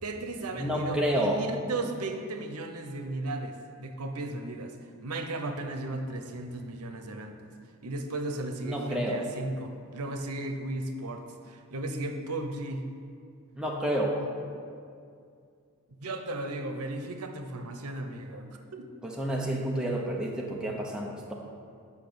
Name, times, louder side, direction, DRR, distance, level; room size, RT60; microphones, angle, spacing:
voice 1, 0.0-4.7 5.0-7.5 7.8-12.9 15.9-18.9, right 2 dB, 85° right, 6 dB, 0.8 m, -35 dB
voice 2, 0.6-1.4 8.6-9.3 13.6-14.3 19.0-21.3, equal, 5° right, -2 dB, 0.8 m, -29 dB
8.3 x 5.6 x 6.8 m, 2.3 s
head